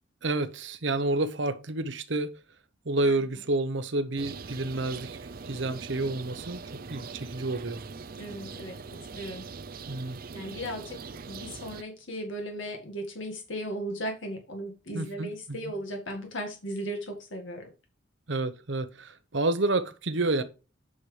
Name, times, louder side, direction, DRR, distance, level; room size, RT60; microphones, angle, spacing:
voice 1, 0.2-2.3 2.8-5.2 5.4-6.6 6.9-7.8 9.9-10.2 14.9-15.3 18.3-20.4, right 2 dB, 65° right, 0.9 m, -29 dB
sound 1, 4.2-11.8, right 4 dB, 45° right, 0.5 m, -42 dB
voice 2, 8.2-8.8 9.1-9.5 10.3-17.7, equal, 70° left, 2.0 m, -36 dB
8.6 x 6.2 x 3.3 m
head